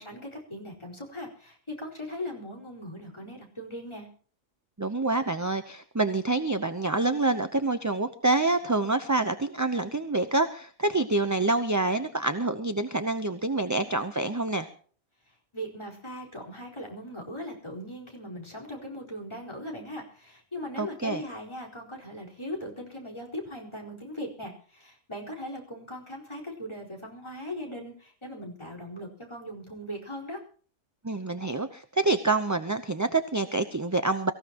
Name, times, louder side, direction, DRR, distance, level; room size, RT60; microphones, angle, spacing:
voice 1, 0.0-4.1 15.3-30.4, left 1 dB, 20° left, 1 dB, 4.5 m, -39 dB
voice 2, 4.8-14.7 20.8-21.2 31.0-34.3, right 2 dB, 20° right, 9 dB, 0.6 m, -27 dB
24.0 x 15.0 x 3.0 m, 0.44 s
omnidirectional pair, 1.4 m